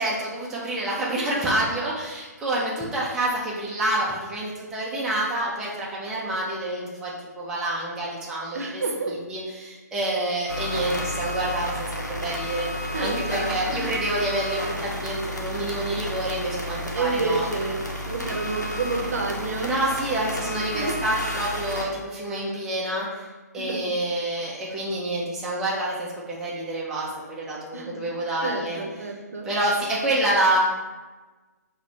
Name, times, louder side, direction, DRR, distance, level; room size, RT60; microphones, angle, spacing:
voice 1, 0.0-8.8 9.1-17.5 19.6-23.3 23.5-28.8 29.4-30.6, right 1 dB, 5° right, -6 dB, 0.3 m, -28 dB
voice 2, 8.5-9.2 12.9-13.9 16.9-19.7 20.7-20.9 23.6-23.9 27.7-28.0 28.4-29.5, right 3 dB, 55° right, 2 dB, 0.6 m, -29 dB
sound 1, 10.5-21.8, equal, 80° left, 0.7 m, -31 dB
5.9 x 2.1 x 2.7 m, 1.3 s
figure-of-eight pair, 135°, 9 cm